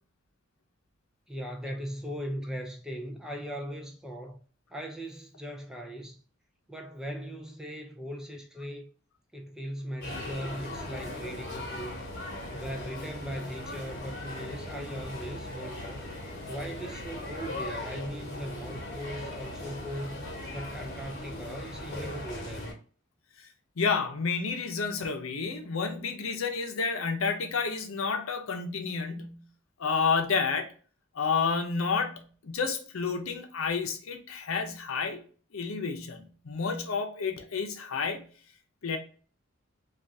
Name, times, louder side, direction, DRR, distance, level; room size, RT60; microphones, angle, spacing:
voice 1, 1.3-4.4 4.7-6.2 6.7-8.8 9.3-12.0 12.5-16.1 16.5-20.3 20.5-22.8, equal, 5° right, 0.4 m, -39 dB
sound 1, 10.0-22.7, left 1 dB, 50° left, 1.1 m, -39 dB
voice 2, 23.8-29.5 29.8-30.7 31.2-35.2 35.5-38.3 38.8-39.0, left 5 dB, 80° left, 0.6 m, -30 dB
3.5 x 2.4 x 2.6 m
head